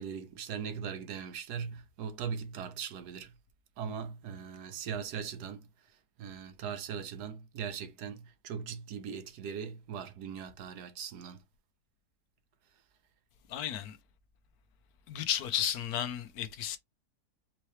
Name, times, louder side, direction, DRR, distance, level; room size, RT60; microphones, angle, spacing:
voice 1, 0.0-3.3 3.8-5.6 6.2-11.4, right 7 dB, 75° right, 1.3 m, -39 dB
voice 2, 13.5-14.0 15.1-16.8, left 10 dB, 75° left, 1.1 m, -33 dB
4.6 x 2.9 x 3.1 m
omnidirectional pair, 1.7 m